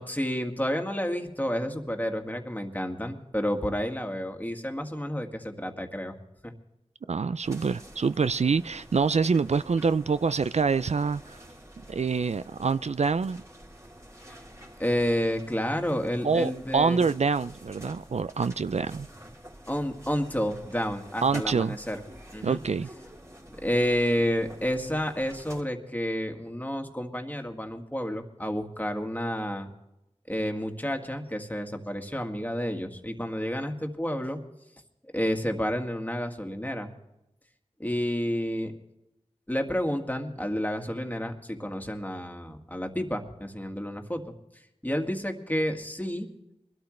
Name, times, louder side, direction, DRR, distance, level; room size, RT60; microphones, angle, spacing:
voice 1, 0.0-6.1 6.4-6.5 14.3-14.4 14.8-17.0 19.7-22.0 22.3-22.6 23.5-29.7 30.3-34.4 35.1-36.9 37.8-38.7 39.5-44.3 44.8-46.3, equal, 15° left, 1.9 m, -30 dB
voice 2, 7.1-11.4 11.9-13.4 16.2-19.1 21.2-21.8 22.4-22.9, right 5 dB, 70° right, 0.4 m, -26 dB
sound 1, 7.4-25.6, equal, 25° right, 3.1 m, -48 dB
22.0 x 12.5 x 3.2 m
wide cardioid pair, 45°, 12 cm